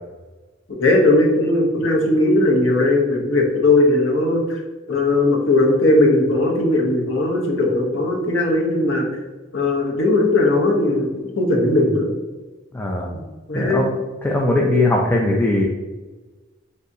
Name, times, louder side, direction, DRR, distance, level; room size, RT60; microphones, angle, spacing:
voice 1, 0.8-4.4 4.9-9.1 9.5-11.1 11.4-12.1 13.1-13.2 13.5-13.9, left 2 dB, 85° left, 0 dB, 0.8 m, -18 dB
voice 2, 12.7-13.1 13.5-13.9 14.2-15.6, left 2 dB, 10° left, -2 dB, 0.3 m, -19 dB
3.9 x 3.4 x 2.7 m, 1.2 s
head